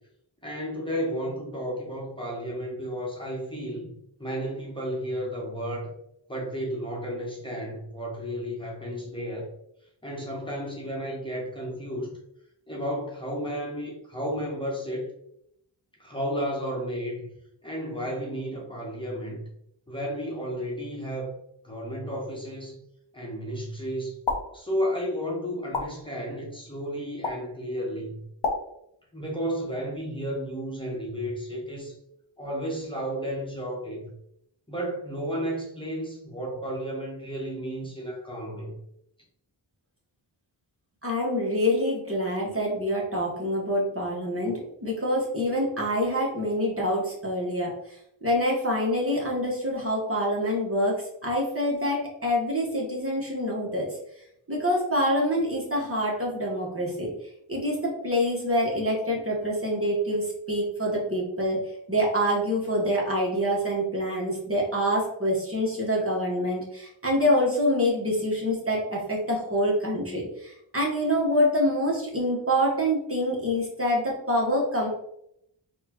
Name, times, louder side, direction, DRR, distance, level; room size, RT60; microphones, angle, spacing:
voice 1, 0.4-3.9 4.2-5.9 6.3-9.5 10.0-12.1 12.7-15.1 16.0-17.2 17.6-19.4 19.9-21.3 21.6-22.8 23.1-24.2 24.5-28.2 29.1-32.0 32.4-34.0 34.7-38.7, equal, 10° left, -4 dB, 1.1 m, -32 dB
sound 1, 24.2-24.4 25.7-25.9 27.2-27.4 28.4-28.6, left 4 dB, 80° left, 0.8 m, -26 dB
voice 2, 41.0-47.7 48.2-53.9 54.5-57.1 57.5-61.6 61.9-74.9, equal, 30° right, -3 dB, 1.2 m, -26 dB
4.1 x 2.4 x 2.9 m, 0.75 s
cardioid pair, 60°, 46 cm